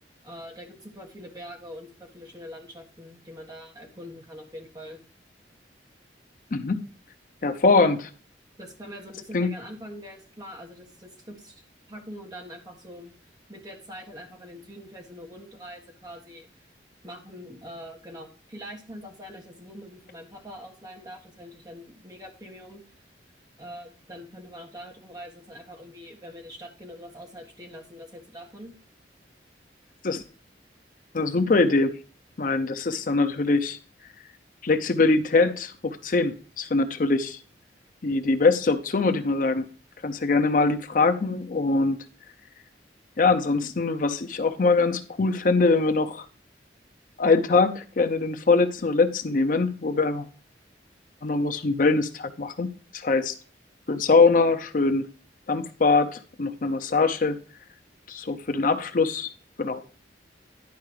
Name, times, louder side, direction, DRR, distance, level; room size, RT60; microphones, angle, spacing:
voice 1, 0.2-5.0 8.6-11.6 11.9-13.2 13.5-16.5 17.0-22.8 23.6-28.7, equal, 20° right, 1 dB, 1.6 m, -43 dB
voice 2, 6.5-6.8 7.4-8.1 9.3-9.5 30.0-30.2 31.1-31.9 32.4-33.8 34.6-37.4 38.0-39.7 40.0-42.0 43.2-46.2 47.2-50.3 51.2-53.3 53.9-55.1 55.5-57.4 58.1-59.3 59.6-59.8, left 3 dB, 50° left, 8 dB, 0.6 m, -23 dB
10.5 x 4.7 x 4.8 m, 0.40 s
head